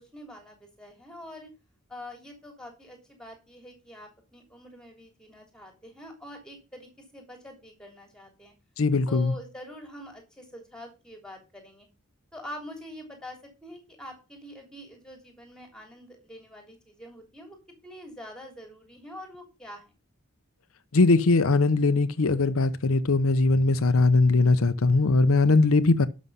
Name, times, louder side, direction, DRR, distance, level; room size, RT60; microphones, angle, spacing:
voice 1, 0.0-1.5 1.9-8.5 9.1-11.9 12.3-17.6 17.8-19.9, left 1 dB, 5° left, 3.2 m, -45 dB
voice 2, 8.8-9.3 20.9-26.1, left 3 dB, 80° left, 0.7 m, -21 dB
11.0 x 6.2 x 5.5 m
head